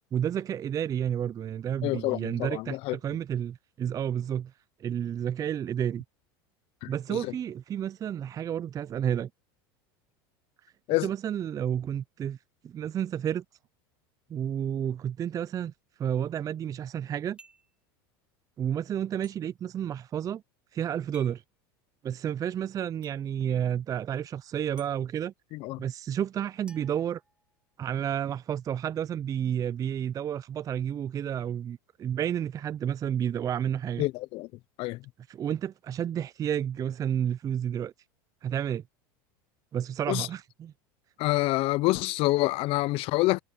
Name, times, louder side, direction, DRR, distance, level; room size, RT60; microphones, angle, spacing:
voice 1, 0.1-4.5 4.8-6.0 6.9-9.3 11.0-12.4 12.6-13.4 14.3-15.7 16.0-17.4 18.6-20.4 20.7-21.4 22.0-25.3 25.8-27.2 27.8-34.0 35.3-37.9 38.4-38.8 39.7-40.7, right 9 dB, 30° right, 0.5 m, -31 dB
voice 2, 1.8-3.0 6.8-7.2 10.9-11.1 25.5-25.8 34.0-34.5 34.8-35.0 40.1-40.3 41.2-43.4, left 20 dB, 55° left, 0.7 m, -27 dB
sound 1, 17.4-17.8 19.2-19.4 21.1-21.4 23.0-23.2 24.8-24.9 26.7-27.8, right 3 dB, 10° right, 1.4 m, -54 dB
hypercardioid pair, 100°, 12 cm